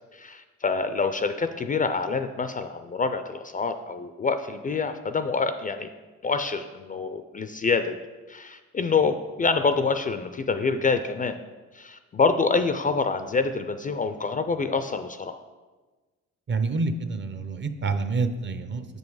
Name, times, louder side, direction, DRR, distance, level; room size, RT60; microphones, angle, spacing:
voice 1, 0.1-5.9 6.2-8.0 8.3-11.4 11.7-15.4, left 4 dB, 30° left, 9 dB, 0.3 m, -26 dB
voice 2, 16.5-18.9, right 3 dB, 40° right, 9 dB, 0.6 m, -27 dB
6.8 x 5.3 x 4.7 m, 1.3 s
cardioid pair, 90°, 30 cm